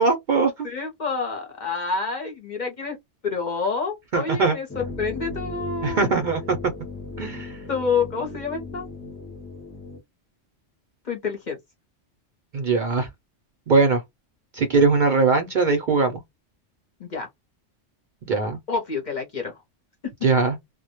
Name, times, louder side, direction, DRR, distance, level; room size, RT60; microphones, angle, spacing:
voice 1, 0.0-0.7 4.1-4.6 5.8-6.6 7.2-7.6 12.5-13.1 13.7-14.0 14.5-16.2 18.3-18.6 20.2-20.6, right 4 dB, 55° right, 0.6 m, -21 dB
voice 2, 0.6-3.0 3.2-6.1 7.7-8.9 11.1-11.6 17.0-17.3 18.7-19.6, left 5 dB, 45° left, 0.7 m, -28 dB
sound 1, 4.7-10.0, left 3 dB, 20° left, 0.4 m, -36 dB
2.1 x 2.1 x 2.8 m
omnidirectional pair, 1.2 m